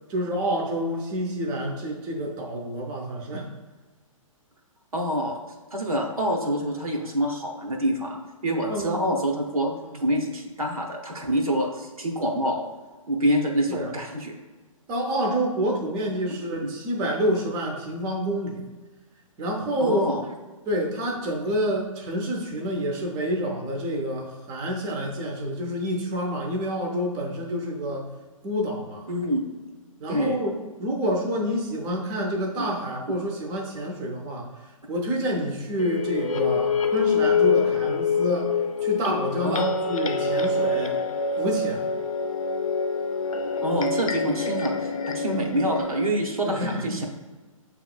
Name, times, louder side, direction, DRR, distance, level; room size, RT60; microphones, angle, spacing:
voice 1, 0.1-3.5 8.7-9.1 9.9-10.0 13.7-13.9 14.9-18.6 19.4-20.0 20.7-28.1 28.4-29.1 30.0-34.5 34.9-38.5 38.8-41.0 41.4-41.9 45.3-45.4 46.5-47.0, equal, 20° right, 1 dB, 0.6 m, -28 dB
voice 2, 4.9-5.4 5.7-9.7 10.0-12.6 13.1-14.3 16.6-16.7 19.8-20.3 29.1-29.5 30.1-30.4 32.6-32.7 39.4-39.6 43.6-47.1, equal, 85° right, 1 dB, 0.9 m, -26 dB
sound 1, 35.8-46.1, left 4 dB, 75° left, 0.5 m, -26 dB
6.9 x 2.9 x 2.3 m, 1.3 s
figure-of-eight pair, 130°, 18 cm